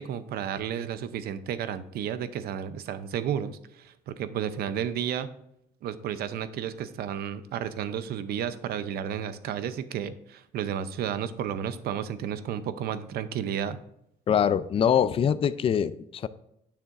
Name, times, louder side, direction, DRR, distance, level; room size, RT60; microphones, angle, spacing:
voice 1, 0.0-5.3 5.8-13.8, right 9 dB, 65° right, 13 dB, 0.6 m, -32 dB
voice 2, 14.3-16.3, left 8 dB, 35° left, 15 dB, 0.4 m, -24 dB
9.4 x 6.8 x 2.5 m, 0.78 s
cardioid pair, 110°, 17 cm